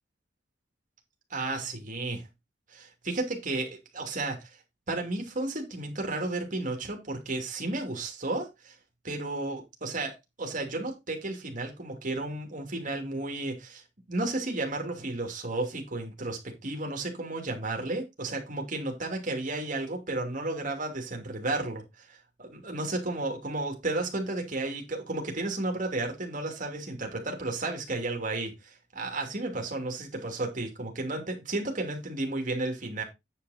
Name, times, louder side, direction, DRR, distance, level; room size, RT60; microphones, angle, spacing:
voice 1, 1.3-2.2 2.7-4.5 4.9-8.7 9.0-13.8 14.1-22.1 22.4-33.0, right 2 dB, 45° right, 2.7 m, -33 dB
9.3 x 6.0 x 4.2 m
head